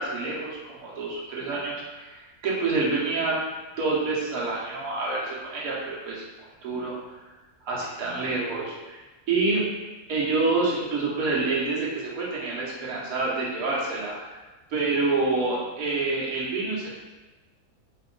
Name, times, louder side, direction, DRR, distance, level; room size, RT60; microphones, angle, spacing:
voice 1, 0.0-3.4 3.8-6.2 6.6-6.9 7.7-9.0 9.3-9.6 10.1-14.4 14.7-16.9, right 3 dB, 70° right, -6 dB, 1.4 m, -27 dB
4.2 x 2.9 x 3.8 m, 1.2 s
omnidirectional pair, 1.7 m